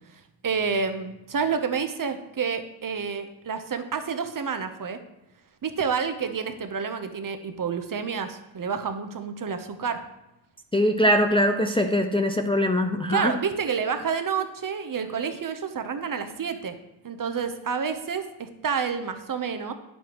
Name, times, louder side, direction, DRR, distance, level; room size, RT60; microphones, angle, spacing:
voice 1, 0.4-5.0 5.6-10.0 13.1-16.8 17.0-19.7, right 6 dB, 40° right, 8 dB, 0.9 m, -29 dB
voice 2, 10.7-13.3, equal, 10° left, 4 dB, 0.5 m, -22 dB
9.3 x 7.2 x 3.0 m, 0.92 s
cardioid pair, 70°, 48 cm